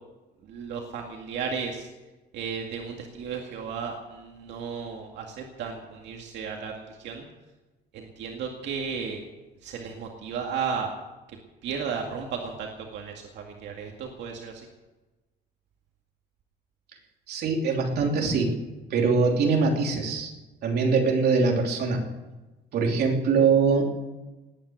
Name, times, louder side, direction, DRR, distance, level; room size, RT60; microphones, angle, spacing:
voice 1, 0.4-1.9 2.3-7.3 7.9-9.3 9.6-10.9 11.6-14.7, right 6 dB, 90° right, 1 dB, 2.1 m, -34 dB
voice 2, 17.3-18.5 18.9-20.3 20.6-22.0 22.7-23.8, right 4 dB, 65° right, 1 dB, 3.1 m, -23 dB
19.0 x 9.2 x 8.0 m, 1.1 s
cardioid pair, 160°, 18 cm